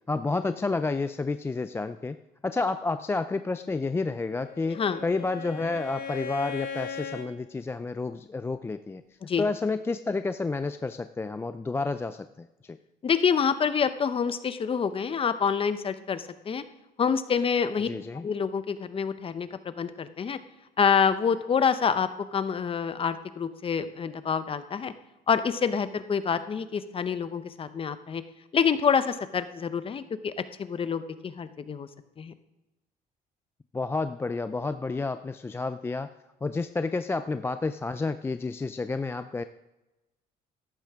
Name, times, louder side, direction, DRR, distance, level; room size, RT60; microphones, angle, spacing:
voice 1, 0.1-2.2 2.4-9.0 9.4-12.8 17.8-18.3 33.7-36.1 36.4-39.4, left 3 dB, 15° left, 11 dB, 0.3 m, -30 dB
Bowed string instrument, 4.1-7.3, left 5 dB, 60° left, 1.1 m, -38 dB
voice 2, 13.0-16.6 17.0-17.9 18.2-20.4 20.8-24.9 25.3-28.2 28.5-30.3 30.6-31.9 32.2-32.3, left 6 dB, 35° left, 12 dB, 0.7 m, -27 dB
13.5 x 11.5 x 3.6 m, 1.0 s
cardioid pair, 110°, 17 cm